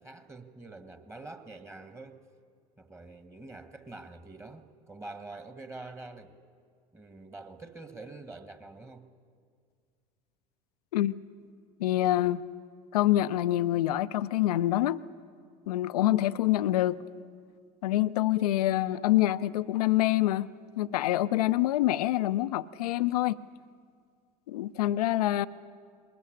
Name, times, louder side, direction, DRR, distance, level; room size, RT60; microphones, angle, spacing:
voice 1, 0.0-2.2 2.8-6.4 6.9-9.1, right 2 dB, 15° right, 8 dB, 1.7 m, -46 dB
voice 2, 11.8-12.4 12.9-15.0 15.7-17.0 17.8-20.5 20.8-23.4 24.5-25.5, left 14 dB, 70° left, 15 dB, 0.6 m, -26 dB
21.5 x 20.5 x 8.7 m, 2.1 s
figure-of-eight pair, 70°, 21 cm